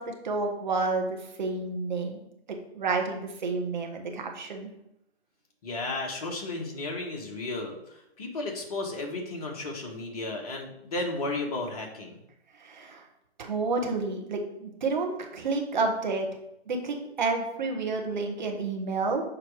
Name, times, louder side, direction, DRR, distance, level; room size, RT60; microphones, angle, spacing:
voice 1, 0.0-2.2 2.5-4.7 12.6-13.0 13.4-16.3 16.7-19.2, right 3 dB, 45° right, 3 dB, 1.5 m, -30 dB
voice 2, 5.6-12.2, left 2 dB, 35° left, 1 dB, 1.5 m, -34 dB
6.6 x 4.6 x 4.7 m, 0.81 s
figure-of-eight pair, 140°, 33 cm